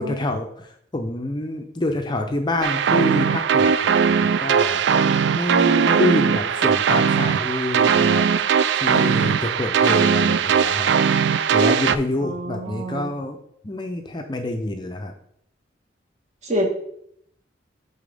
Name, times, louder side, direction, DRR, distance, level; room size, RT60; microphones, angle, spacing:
voice 1, 0.0-4.9 5.3-8.3 8.8-10.9 11.5-13.4 13.6-15.1, left 2 dB, 25° left, 5 dB, 0.5 m, -27 dB
sound 1, 2.6-12.0, right 7 dB, 65° right, 0.3 m, -19 dB
voice 2, 12.2-13.1 16.4-16.7, equal, 40° right, 0 dB, 1.4 m, -27 dB
8.9 x 4.1 x 3.5 m, 0.70 s
head